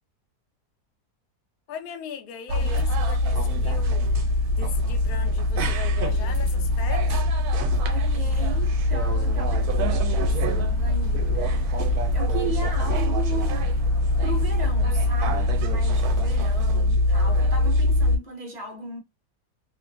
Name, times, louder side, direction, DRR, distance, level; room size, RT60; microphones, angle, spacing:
voice 1, 1.7-4.0 4.5-7.2, left 7 dB, 75° left, 1.0 m, -38 dB
sound 1, 2.5-18.2, left 1 dB, 80° right, 1.1 m, -23 dB
voice 2, 7.8-13.7 14.2-19.0, right 3 dB, 40° right, 0.7 m, -36 dB
sound 2, 8.2-16.5, right 2 dB, 35° left, 0.5 m, -37 dB
2.8 x 2.1 x 2.5 m
omnidirectional pair, 1.7 m